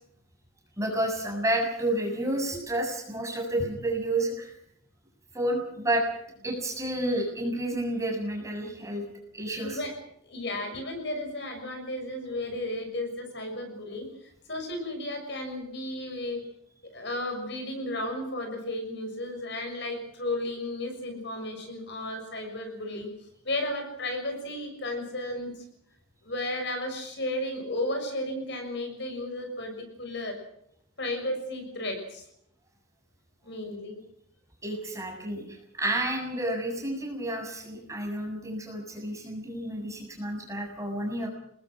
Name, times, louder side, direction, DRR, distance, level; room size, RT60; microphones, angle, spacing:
voice 1, 0.8-4.5 5.3-6.0 6.4-9.0 9.3-9.8 34.6-41.3, right 1 dB, 15° right, 1 dB, 7.3 m, -30 dB
voice 2, 9.6-9.9 10.2-16.4 16.8-23.1 23.4-25.6 26.2-30.4 31.0-32.3 33.4-34.0, left 1 dB, 55° left, 4 dB, 6.7 m, -34 dB
27.0 x 21.0 x 6.2 m, 0.73 s
head